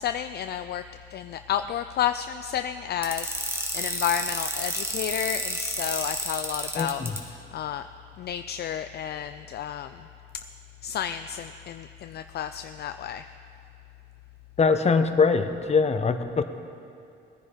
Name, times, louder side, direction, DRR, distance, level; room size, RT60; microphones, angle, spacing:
voice 1, 0.0-7.9 8.2-10.1 10.8-13.3, left 9 dB, 55° left, 10 dB, 0.4 m, -31 dB
sound 1, 3.0-7.2, right 1 dB, 10° right, 1.9 m, -30 dB
voice 2, 6.8-7.1 14.6-16.4, left 4 dB, 35° left, 9 dB, 0.9 m, -22 dB
18.0 x 9.7 x 5.1 m, 2.6 s
cardioid pair, 90°, 20 cm